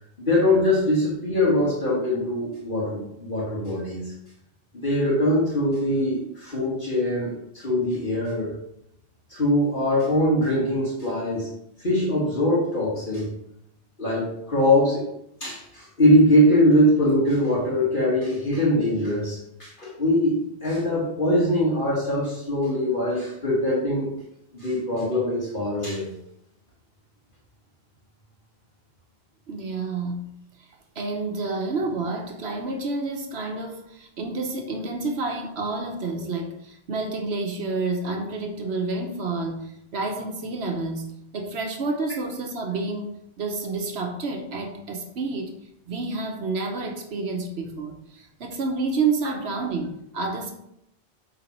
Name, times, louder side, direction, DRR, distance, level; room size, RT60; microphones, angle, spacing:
voice 1, 0.2-4.1 4.8-8.5 9.3-11.5 11.8-13.3 14.0-15.1 15.4-24.1 24.5-26.1, left 1 dB, 50° left, -6 dB, 2.0 m, -22 dB
voice 2, 29.5-30.4 31.0-41.1 41.3-43.1 43.4-45.6 45.9-50.5, right 3 dB, 70° right, 3 dB, 1.1 m, -29 dB
8.5 x 3.9 x 4.2 m, 0.77 s
omnidirectional pair, 1.1 m